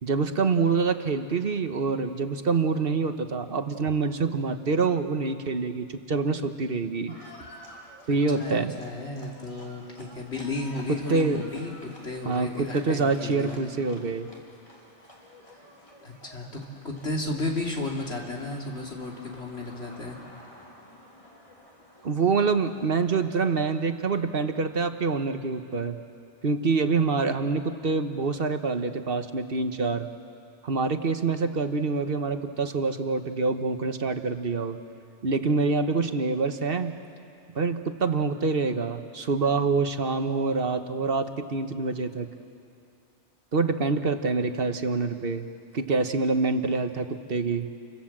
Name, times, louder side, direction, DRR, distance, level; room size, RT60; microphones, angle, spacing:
voice 1, 0.0-7.1 8.1-8.7 10.9-11.4 12.2-14.3 22.0-26.0 26.4-30.1 30.6-34.8 35.2-37.0 37.5-42.3 43.5-45.5 45.7-47.7, right 4 dB, 55° right, 8 dB, 1.3 m, -26 dB
Livestock farm animals working animals, 7.1-23.9, left 1 dB, 30° left, 3.6 m, -51 dB
voice 2, 8.1-13.7 16.0-20.2, left 2 dB, 65° left, -1 dB, 3.1 m, -34 dB
29.0 x 25.0 x 7.5 m, 2.5 s
omnidirectional pair, 1.2 m